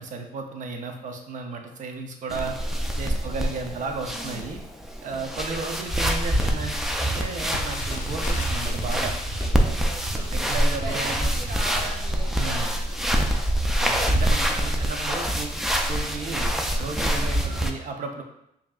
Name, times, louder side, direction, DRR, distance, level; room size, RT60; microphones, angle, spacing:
voice 1, 0.0-2.6 3.0-4.6 5.0-9.1 10.3-11.3 12.4-12.7 13.8-15.6 15.9-18.2, right 4 dB, 50° right, 4 dB, 0.6 m, -34 dB
sound 1, 2.3-17.7, equal, ahead, 0.4 m, -26 dB
voice 2, 3.1-3.9 4.1-4.5 5.1-5.3 9.5-13.5 14.8-15.4 16.9-17.7, right 2 dB, 70° right, -3 dB, 1.0 m, -41 dB
sound 2, 6.0-12.4, right 1 dB, 20° right, 1.0 m, -37 dB
Crackle, 7.5-14.4 15.0-15.1 15.4-15.7 16.3-16.5 16.8-16.9, left 4 dB, 50° left, 0.5 m, -42 dB
5.0 x 2.7 x 2.4 m, 0.79 s
cardioid pair, 95°, 16 cm